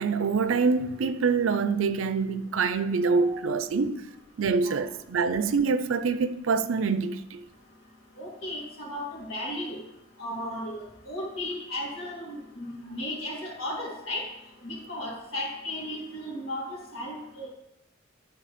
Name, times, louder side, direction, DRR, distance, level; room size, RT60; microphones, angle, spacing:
voice 1, 0.0-4.0 4.4-7.4, right 4 dB, 70° right, 0.5 m, -25 dB
voice 2, 3.0-3.4 4.6-4.8 8.2-9.8 10.2-14.2 14.6-17.5, left 1 dB, 80° left, 2.4 m, -35 dB
10.0 x 3.9 x 5.0 m
head